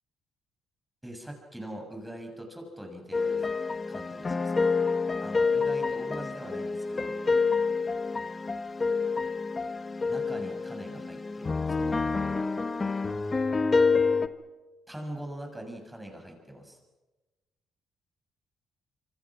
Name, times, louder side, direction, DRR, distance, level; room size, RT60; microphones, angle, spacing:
voice 1, 1.0-3.4 3.9-4.5 5.2-7.1 10.1-12.0 14.9-16.8, right 1 dB, 5° right, 3 dB, 6.7 m, -42 dB
sound 1, 3.1-14.3, left 4 dB, 30° left, 1.3 m, -28 dB
26.5 x 25.5 x 6.1 m, 1.1 s
cardioid pair, 90°, 0 cm